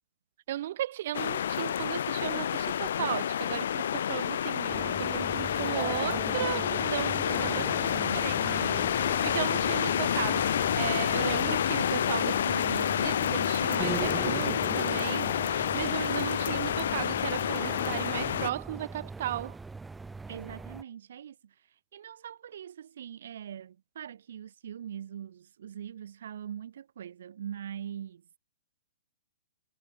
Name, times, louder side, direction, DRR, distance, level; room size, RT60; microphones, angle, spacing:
voice 1, 0.5-7.7 8.1-8.4 9.2-19.6, right 13 dB, 40° right, 0.7 m, -35 dB
sound 1, 1.1-18.5, left 9 dB, 55° left, 0.7 m, -29 dB
sound 2, 4.7-20.8, right 3 dB, 5° right, 0.4 m, -40 dB
voice 2, 7.2-9.0 20.3-28.3, right 9 dB, 55° right, 5.9 m, -42 dB
hypercardioid pair, 175°, 0 cm